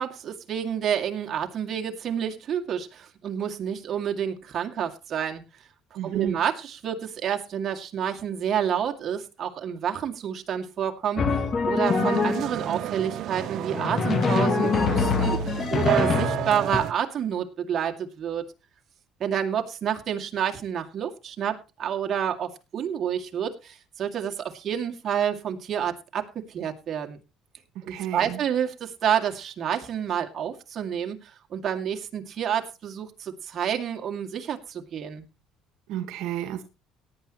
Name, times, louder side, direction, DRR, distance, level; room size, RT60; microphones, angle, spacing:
voice 1, 0.0-5.5 6.0-18.4 19.2-27.2 27.9-35.2, right 8 dB, 40° right, 3 dB, 2.2 m, -29 dB
voice 2, 5.9-6.4 27.7-28.4 35.9-36.6, right 11 dB, 75° right, 8 dB, 1.5 m, -31 dB
Drum, 11.2-12.6 13.7-16.8, left 5 dB, 35° left, 1.5 m, -24 dB
sound 1, 11.8-16.9, right 12 dB, 55° right, 0.7 m, -31 dB
18.0 x 10.5 x 3.0 m, 0.29 s
cardioid pair, 125°, 0 cm